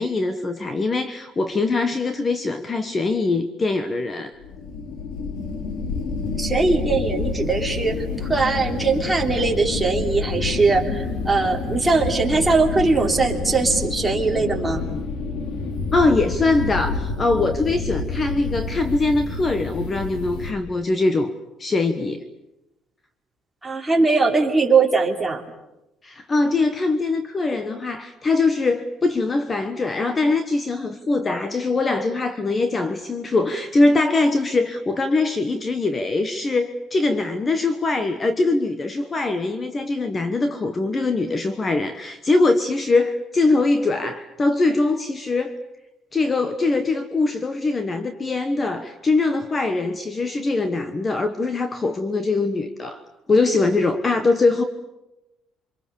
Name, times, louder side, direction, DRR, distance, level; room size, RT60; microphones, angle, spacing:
voice 1, 0.0-4.4 15.9-21.3 21.6-22.3 26.0-45.5 46.1-53.0 53.3-54.6, left 3 dB, 25° left, 10 dB, 1.3 m, -22 dB
sound 1, 4.4-20.5, left 4 dB, 70° left, 3.9 m, -28 dB
voice 2, 6.4-14.8 23.6-25.4, right 3 dB, 10° right, 1 dB, 3.3 m, -20 dB
28.5 x 25.5 x 7.0 m, 0.95 s
cardioid pair, 145°, 0 cm